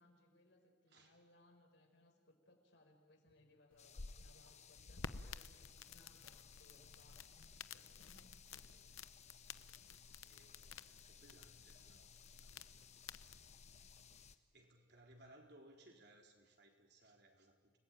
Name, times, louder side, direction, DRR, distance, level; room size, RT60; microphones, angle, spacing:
voice 1, 0.0-8.7, left 1 dB, 60° left, 3 dB, 5.3 m, -69 dB
sound 1, 3.7-14.3, left 5 dB, 85° left, 0.9 m, -54 dB
sound 2, 3.8-14.4, left 8 dB, 35° left, 1.2 m, -62 dB
voice 2, 10.2-13.4 14.1-17.8, right 1 dB, 55° right, 2 dB, 4.2 m, -66 dB
30.0 x 20.0 x 9.1 m, 1.3 s
head